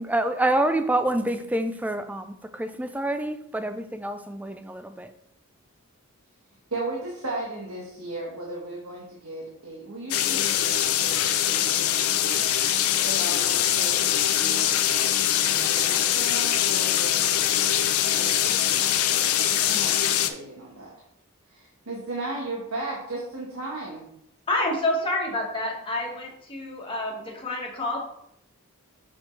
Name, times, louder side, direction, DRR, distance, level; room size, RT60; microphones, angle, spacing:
voice 1, 0.0-5.1, right 1 dB, 5° right, 9 dB, 0.3 m, -27 dB
voice 2, 6.7-12.5 13.0-20.9 21.5-24.1, right 2 dB, 75° right, -3 dB, 1.3 m, -37 dB
sound 1, 10.1-20.3, left 11 dB, 80° left, 0.5 m, -23 dB
voice 3, 24.5-28.0, left 1 dB, 25° left, -2 dB, 1.5 m, -28 dB
6.3 x 6.2 x 3.2 m, 0.74 s
head